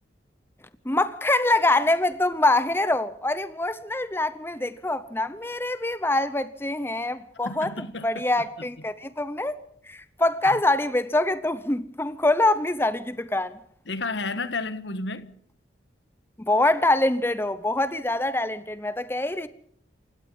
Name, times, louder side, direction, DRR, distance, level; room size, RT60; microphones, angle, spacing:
voice 1, 0.8-7.7 8.0-9.5 9.9-13.6 16.5-19.5, left 2 dB, 10° left, 0.8 m, -24 dB
voice 2, 7.4-8.7 10.4-10.6 13.9-15.4, left 3 dB, 75° left, 1.3 m, -32 dB
28.0 x 17.0 x 5.6 m
head